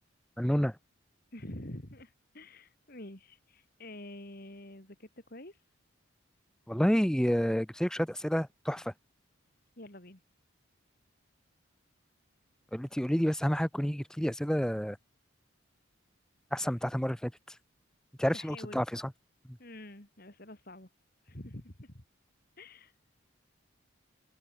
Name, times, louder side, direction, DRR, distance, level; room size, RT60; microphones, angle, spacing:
voice 1, 0.4-0.8 6.7-8.9 12.7-15.0 16.5-17.3 18.2-19.0, equal, 5° left, 0.8 m, -29 dB
voice 2, 1.3-5.6 9.8-10.2 18.3-18.8 19.6-20.9 21.2-22.0 22.6-22.9, left 1 dB, 45° left, 3.5 m, -47 dB
open air
head